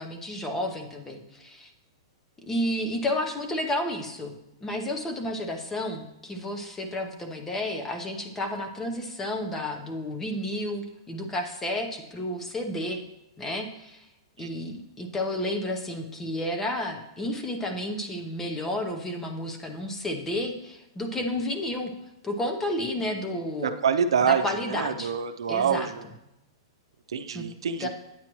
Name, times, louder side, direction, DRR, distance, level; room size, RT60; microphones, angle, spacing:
voice 1, 0.0-1.7 2.5-4.3 4.6-13.0 13.4-14.1 14.4-21.9 22.2-23.8 24.2-25.1 25.5-25.9 27.3-27.5 27.8-27.9, left 1 dB, 10° left, 4 dB, 0.9 m, -31 dB
voice 2, 23.6-26.0 27.1-27.9, right 7 dB, 90° right, 7 dB, 0.7 m, -26 dB
9.2 x 8.5 x 3.1 m, 0.87 s
hypercardioid pair, 150°, 3 cm